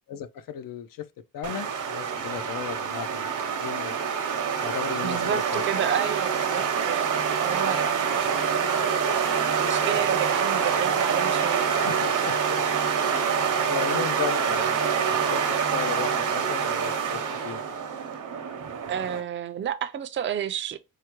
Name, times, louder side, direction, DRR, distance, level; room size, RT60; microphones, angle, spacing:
voice 1, 0.1-1.1 1.3-3.3 3.6-4.0 4.6-5.6 11.5-12.6 13.0-14.9 15.3-17.6, left 9 dB, 70° left, 0.5 m, -36 dB
sound 1, 1.4-19.2, right 7 dB, 60° right, 0.7 m, -26 dB
voice 2, 5.0-8.9 9.6-11.9 13.9-14.1 18.9-20.8, right 9 dB, 35° right, 0.4 m, -31 dB
4.7 x 2.1 x 2.9 m
wide cardioid pair, 150°, 34 cm